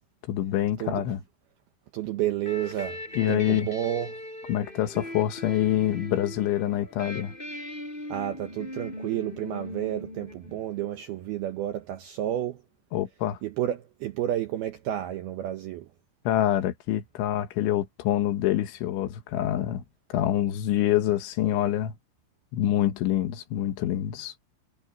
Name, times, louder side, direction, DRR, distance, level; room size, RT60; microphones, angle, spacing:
voice 1, 0.3-1.2 3.2-3.7 4.5-7.3 12.9-13.4 16.3-19.8 20.1-21.9 22.5-24.3, left 12 dB, 70° left, 3.7 m, -26 dB
voice 2, 1.9-3.0 3.3-4.2 8.1-12.6 13.4-15.9, right 12 dB, 90° right, 2.1 m, -31 dB
sound 1, 2.4-10.9, left 1 dB, 10° left, 4.6 m, -40 dB
omnidirectional pair, 5.9 m